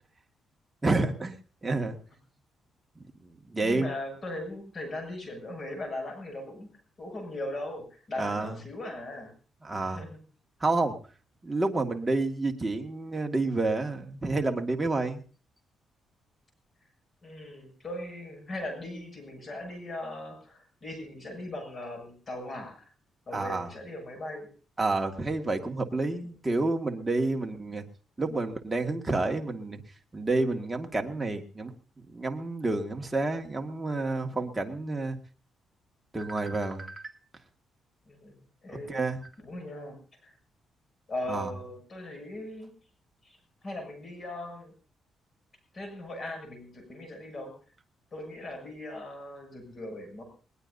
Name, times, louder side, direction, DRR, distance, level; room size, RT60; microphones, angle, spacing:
voice 1, 0.8-1.4 1.6-2.0 3.5-3.9 8.2-8.6 9.6-10.0 10.6-11.0 11.4-15.2 23.3-23.7 24.8-27.8 28.2-29.8 30.1-31.7 32.1-35.2 36.1-37.1 38.9-39.2 41.3-41.5, right 2 dB, 15° right, 3 dB, 1.9 m, -29 dB
voice 2, 3.6-6.7 7.0-9.3 9.8-10.2 17.2-22.9 23.3-24.5 38.1-38.4 38.6-38.9 39.4-40.0 40.2-40.3 41.1-42.7 43.2-44.7 45.7-47.5 48.1-50.2, left 1 dB, 35° left, 4 dB, 6.9 m, -39 dB
20.5 x 20.0 x 2.7 m, 0.38 s
cardioid pair, 120°, 0 cm